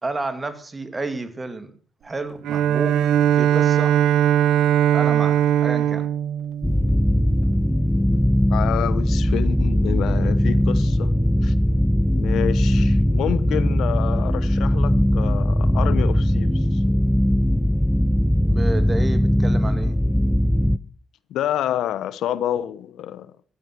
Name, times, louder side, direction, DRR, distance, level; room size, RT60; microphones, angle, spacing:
voice 1, 0.0-1.7 2.0-3.0 3.4-4.0 4.9-6.1 18.5-20.0, right 2 dB, 25° right, 2.4 m, -30 dB
Bowed string instrument, 2.4-7.5, right 10 dB, 85° right, 0.7 m, -20 dB
sound 1, 6.6-20.8, equal, 5° left, 0.6 m, -19 dB
voice 2, 7.9-8.2 8.5-11.1 11.4-11.5 12.1-16.8 21.3-23.3, left 11 dB, 80° left, 1.0 m, -28 dB
15.0 x 12.5 x 6.2 m
cardioid pair, 90°, 0 cm